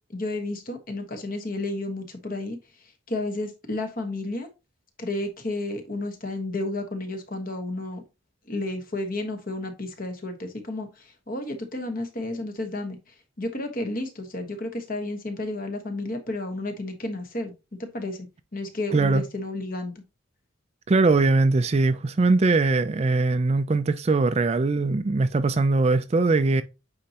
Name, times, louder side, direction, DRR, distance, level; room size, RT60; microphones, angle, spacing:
voice 1, 0.1-2.6 3.1-4.5 5.0-8.0 8.5-10.9 11.3-13.0 13.4-17.5 17.8-18.3 18.5-19.9, left 2 dB, 40° left, 1.3 m, -31 dB
voice 2, 18.9-19.2 20.9-26.6, right 3 dB, 30° right, 0.3 m, -21 dB
8.6 x 4.3 x 2.9 m
head